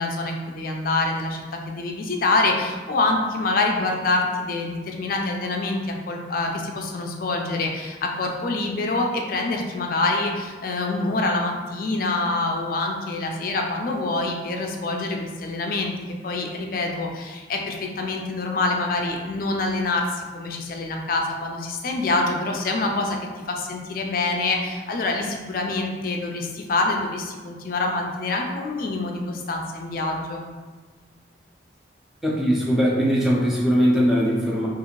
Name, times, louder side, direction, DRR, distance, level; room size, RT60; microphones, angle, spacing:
voice 1, 0.0-15.9 16.2-23.2 23.5-30.4, left 2 dB, 50° left, 1 dB, 0.4 m, -26 dB
voice 2, 32.2-34.7, equal, ahead, -6 dB, 0.5 m, -20 dB
2.6 x 2.4 x 3.0 m, 1.4 s
head